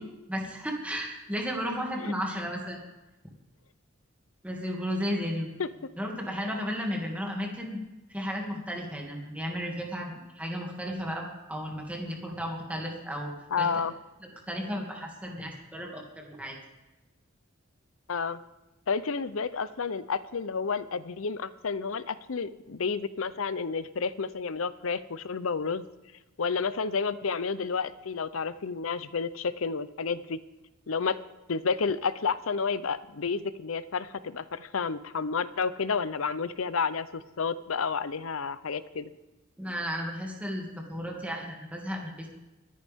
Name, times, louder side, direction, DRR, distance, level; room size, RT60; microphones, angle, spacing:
voice 1, 0.3-2.8 4.4-5.5 6.0-7.8 8.1-13.3 13.6-13.7 14.2-16.6 39.6-42.3, equal, 5° right, 0 dB, 2.4 m, -34 dB
voice 2, 13.5-13.9 18.1-18.4 18.9-25.9 26.4-30.4 30.9-31.2 31.5-39.1, left 5 dB, 80° left, 15 dB, 0.7 m, -30 dB
24.5 x 9.5 x 3.6 m, 1.1 s
head